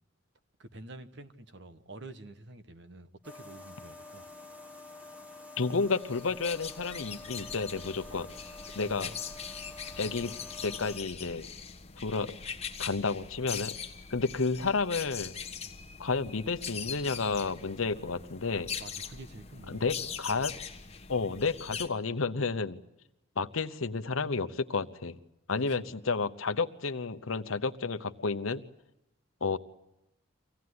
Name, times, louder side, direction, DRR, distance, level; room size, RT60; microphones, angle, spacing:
voice 1, 0.6-4.3 8.8-9.2 18.8-20.5 25.7-25.9, right 2 dB, 55° right, 1.2 m, -48 dB
sound 1, 3.2-11.0, left 2 dB, 5° right, 1.3 m, -48 dB
voice 2, 5.6-8.3 8.7-9.1 10.0-10.3 10.6-11.5 12.0-12.3 12.8-13.7 14.1-15.3 16.0-18.7 19.7-20.5 21.1-22.8 23.4-25.2 25.5-28.6 29.4-29.6, left 4 dB, 80° left, 0.9 m, -31 dB
sound 2, 5.9-21.9, left 7 dB, 30° left, 1.4 m, -41 dB
24.5 x 17.5 x 9.6 m
head